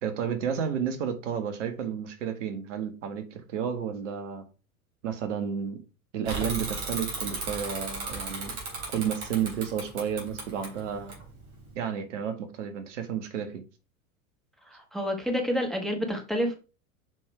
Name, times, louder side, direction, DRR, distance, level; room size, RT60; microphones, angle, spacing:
voice 1, 0.0-4.4 5.0-5.8 6.1-8.5 8.9-11.1 11.7-13.6, right 8 dB, 55° right, 1.6 m, -31 dB
Bicycle / Mechanisms, 6.2-11.7, right 3 dB, 40° right, 3.7 m, -35 dB
voice 2, 14.7-16.6, equal, ahead, 1.2 m, -29 dB
6.2 x 5.4 x 4.5 m
figure-of-eight pair, 90°, 43 cm